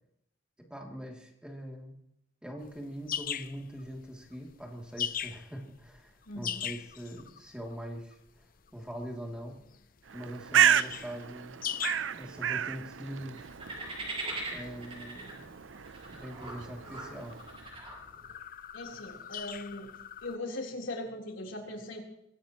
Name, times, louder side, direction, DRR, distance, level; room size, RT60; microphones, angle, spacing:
voice 1, 0.6-1.9 2.4-8.5 8.7-9.6 10.1-11.6 12.1-13.4 14.5-15.6 16.1-17.3, equal, 5° right, 0 dB, 2.7 m, -42 dB
sound 1, 2.6-20.4, left 9 dB, 45° left, 0.6 m, -42 dB
voice 2, 6.3-6.6 18.7-19.9 20.2-22.0, left 2 dB, 80° left, -1 dB, 3.8 m, -39 dB
Bird, 10.1-17.7, right 9 dB, 75° right, 0.6 m, -32 dB
sound 2, 13.4-18.3, right 2 dB, 30° right, 5.8 m, -41 dB
23.0 x 17.5 x 3.0 m, 0.76 s
head